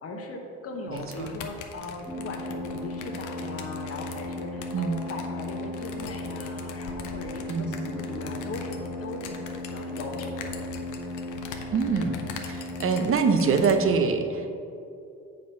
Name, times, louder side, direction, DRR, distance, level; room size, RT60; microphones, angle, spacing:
voice 1, 0.0-10.9, left 3 dB, 50° left, 2 dB, 1.0 m, -38 dB
sound 1, 0.9-13.7, left 6 dB, 85° left, 0.8 m, -43 dB
voice 2, 0.9-1.3 4.7-5.0 7.5-7.8 11.7-12.1 12.5-14.5, right 5 dB, 45° right, 6 dB, 0.8 m, -24 dB
sound 2, 2.1-13.9, left 1 dB, 5° left, 1.4 m, -36 dB
7.2 x 5.1 x 5.7 m, 2.6 s
cardioid pair, 90°, 30 cm